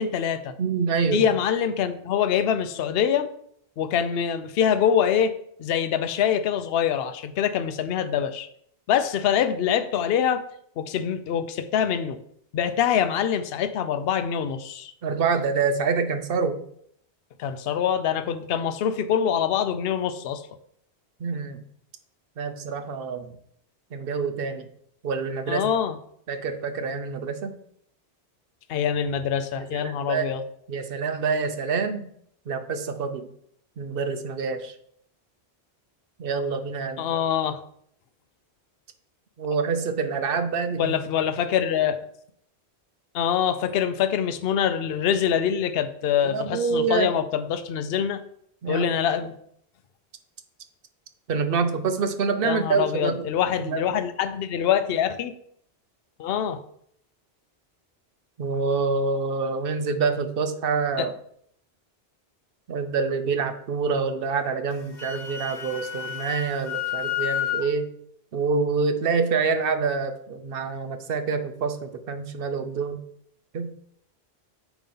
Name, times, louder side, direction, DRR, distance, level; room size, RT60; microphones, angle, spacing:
voice 1, 0.0-0.5 1.1-3.3 3.8-5.3 5.6-8.5 8.9-10.4 10.8-12.2 12.5-14.9 17.4-20.4 25.5-25.9 28.7-30.4 37.0-37.6 40.8-42.0 43.1-48.2 48.7-49.3 52.4-55.3 56.2-56.6 61.0-61.1, left 8 dB, 70° left, 11 dB, 0.8 m, -24 dB
voice 2, 0.6-1.3 15.0-16.6 21.2-21.7 22.4-23.3 23.9-24.7 25.0-25.6 26.3-27.5 29.6-30.3 30.7-32.1 32.5-33.3 33.8-34.8 36.2-37.1 39.4-41.0 46.2-47.1 48.6-48.9 51.3-53.2 53.6-53.8 58.4-61.1 62.7-67.9 68.3-73.0 73.5-73.7, right 5 dB, 65° right, 8 dB, 0.9 m, -26 dB
Wind instrument woodwind instrument, 64.7-67.7, left 10 dB, 50° left, 1.1 m, -30 dB
9.0 x 3.1 x 5.5 m, 0.68 s
omnidirectional pair, 1.1 m